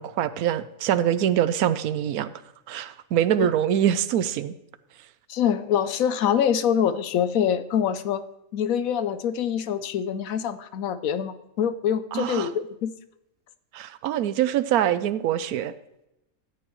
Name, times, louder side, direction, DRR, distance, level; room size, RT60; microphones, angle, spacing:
voice 1, 0.0-2.3 2.7-4.5 12.1-12.5 13.7-15.7, right 10 dB, 85° right, 14 dB, 1.1 m, -24 dB
voice 2, 5.3-8.2 8.5-12.9, left 8 dB, 75° left, 12 dB, 1.1 m, -25 dB
13.5 x 8.9 x 3.1 m, 0.87 s
omnidirectional pair, 1.5 m